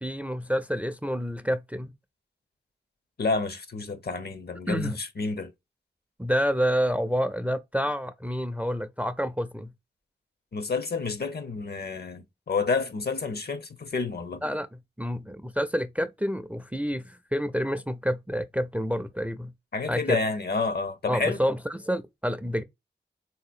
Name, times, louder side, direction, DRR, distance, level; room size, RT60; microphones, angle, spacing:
voice 1, 0.0-1.9 4.7-5.0 6.2-9.7 14.4-19.5 19.9-20.2 21.1-22.6, equal, 5° right, 0.4 m, -28 dB
voice 2, 3.2-5.5 10.5-14.4 19.7-21.4, left 4 dB, 60° left, 0.7 m, -29 dB
3.9 x 2.8 x 2.4 m
cardioid pair, 40°, 19 cm